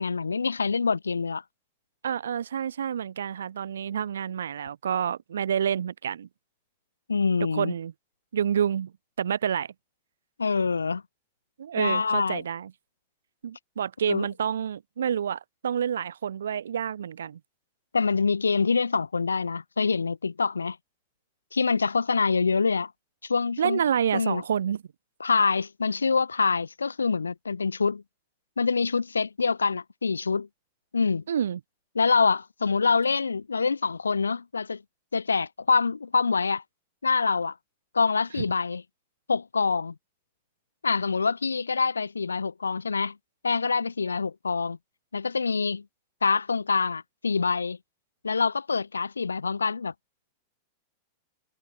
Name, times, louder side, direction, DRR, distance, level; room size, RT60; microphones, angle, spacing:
voice 1, 0.0-1.4 7.1-7.7 10.4-11.0 11.7-12.4 14.1-14.3 17.9-20.8 21.5-22.9 23.2-23.8 24.1-24.4 25.2-28.0 28.6-30.5 30.9-31.2 31.9-34.8 35.1-36.6 37.0-37.5 37.9-38.8 39.3-39.9 40.8-43.2 43.4-44.8 45.1-45.8 46.2-47.8 48.2-49.9, left 4 dB, 85° left, 1.1 m, -25 dB
voice 2, 2.0-6.3 7.5-7.9 8.3-8.9 9.2-9.7 11.6-12.7 13.4-17.4 23.6-24.8 31.3-31.6 38.4-38.5, right 8 dB, 70° right, 1.8 m, -28 dB
figure-of-eight pair, 95°, 0 cm